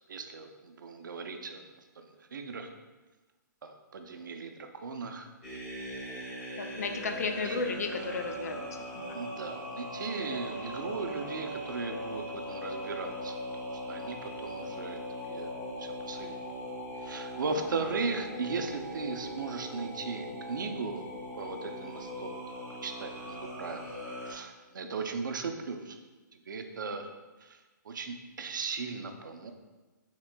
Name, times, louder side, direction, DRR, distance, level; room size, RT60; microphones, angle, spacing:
voice 1, 0.1-1.6 2.0-2.7 3.6-5.3 7.4-7.6 9.1-13.4 13.9-16.4 17.0-21.0 21.4-22.4 22.8-23.9 24.3-26.0 26.5-27.1 27.4-27.6 27.8-29.5, right 4 dB, 75° right, 6 dB, 0.5 m, -37 dB
sound 1, 5.4-24.3, equal, 5° left, 1.1 m, -40 dB
voice 2, 6.6-9.2, left 4 dB, 50° left, 5 dB, 0.4 m, -34 dB
5.8 x 3.6 x 2.2 m, 1.2 s
hypercardioid pair, 180°, 11 cm